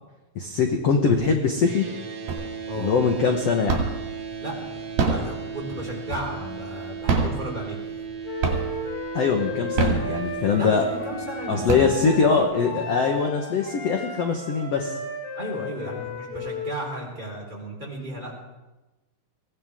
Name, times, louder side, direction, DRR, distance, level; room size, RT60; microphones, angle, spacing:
voice 1, 0.3-1.8 2.8-3.8 9.1-10.8 11.5-14.9, left 5 dB, 65° left, 3 dB, 1.7 m, -22 dB
sound 1, 1.6-11.7, right 6 dB, 40° right, 2.6 m, -36 dB
sound 2, 2.3-2.8 3.1-4.1 4.8-6.6 7.0-8.1 8.4-9.0 9.6-10.6 11.1-11.2 11.5-12.4, right 4 dB, 75° right, 4.3 m, -25 dB
voice 2, 2.7-3.0 4.4-7.8 10.5-12.9 15.3-18.3, right 1 dB, 10° right, -2 dB, 4.1 m, -35 dB
Wind instrument woodwind instrument, 8.2-16.8, left 1 dB, 80° left, 6.1 m, -35 dB
23.0 x 17.0 x 3.7 m, 1.1 s
omnidirectional pair, 4.3 m